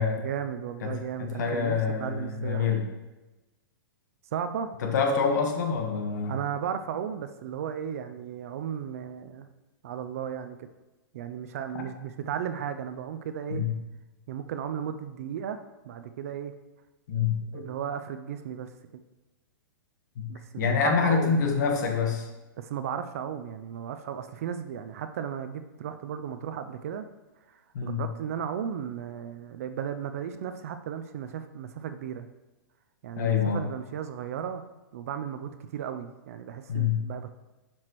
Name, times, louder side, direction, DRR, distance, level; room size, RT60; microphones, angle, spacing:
voice 1, 0.2-2.7 4.3-4.7 6.3-9.5 9.8-10.7 11.1-13.6 14.3-16.5 17.5-19.0 20.3-21.5 22.6-27.1 27.5-32.3 33.0-34.6 34.9-37.3, right 8 dB, 40° right, 9 dB, 0.3 m, -35 dB
voice 2, 0.8-2.8 4.8-6.3 11.7-11.8 13.5-13.7 17.1-17.7 20.2-20.3 20.6-22.3 27.7-28.0 33.2-33.6 36.7-37.0, left 6 dB, 50° left, 3 dB, 1.2 m, -26 dB
7.5 x 5.9 x 3.0 m, 1.1 s
hypercardioid pair, 170°, 12 cm